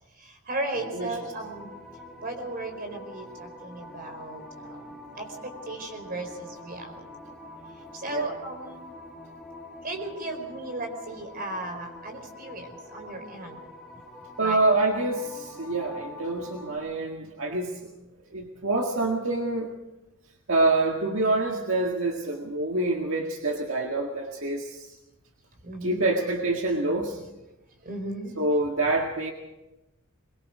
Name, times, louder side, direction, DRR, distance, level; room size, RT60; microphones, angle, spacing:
voice 1, 0.1-1.7 2.2-4.9 5.1-7.0 7.9-8.8 9.8-13.6 14.4-14.6 25.6-26.0 27.8-28.3, right 2 dB, 45° right, 5 dB, 4.7 m, -36 dB
sound 1, 0.7-16.8, left 2 dB, ahead, 3.8 m, -45 dB
voice 2, 14.4-17.9 18.3-19.7 20.5-24.9 25.8-27.2 28.4-29.3, right 2 dB, 70° right, 1 dB, 1.9 m, -26 dB
23.5 x 21.5 x 5.1 m, 1.0 s
head